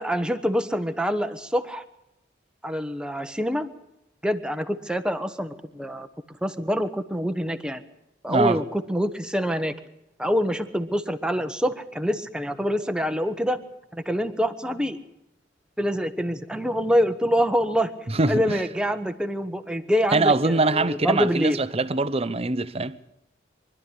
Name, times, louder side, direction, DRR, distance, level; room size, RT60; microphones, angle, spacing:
voice 1, 0.0-1.8 2.6-3.7 4.2-6.1 6.4-7.8 8.2-9.7 10.2-13.6 13.9-15.0 15.8-17.9 18.2-21.6, equal, 5° right, 1.2 m, -25 dB
voice 2, 8.3-8.6 18.1-18.6 20.1-23.0, right 3 dB, 35° right, 0.9 m, -23 dB
24.5 x 12.0 x 9.9 m
head